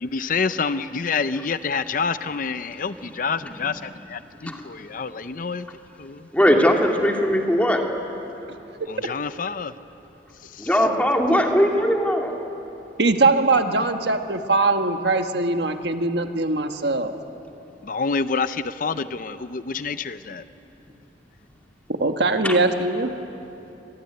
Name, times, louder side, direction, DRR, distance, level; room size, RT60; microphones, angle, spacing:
voice 1, 0.0-5.7 6.0-6.3 8.9-9.7 10.6-10.7 17.8-20.4, left 5 dB, 50° left, 12 dB, 0.6 m, -27 dB
voice 2, 3.4-3.7 4.4-4.6 6.3-7.8 10.6-12.3 22.4-22.6, equal, 10° left, 1 dB, 2.3 m, -20 dB
voice 3, 13.0-17.1 22.0-23.1, right 3 dB, 70° right, 6 dB, 1.4 m, -21 dB
25.5 x 19.5 x 9.7 m, 2.9 s
head